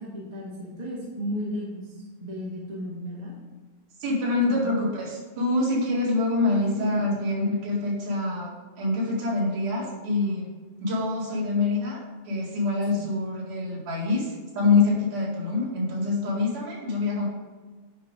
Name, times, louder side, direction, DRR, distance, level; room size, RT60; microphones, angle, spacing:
voice 1, 0.0-3.3 4.5-4.7 6.6-7.0 13.0-13.1, equal, 15° right, -6 dB, 1.6 m, -35 dB
voice 2, 4.0-10.5 10.8-17.3, left 3 dB, 85° right, -4 dB, 3.6 m, -25 dB
10.0 x 5.0 x 3.8 m, 1.4 s
omnidirectional pair, 3.5 m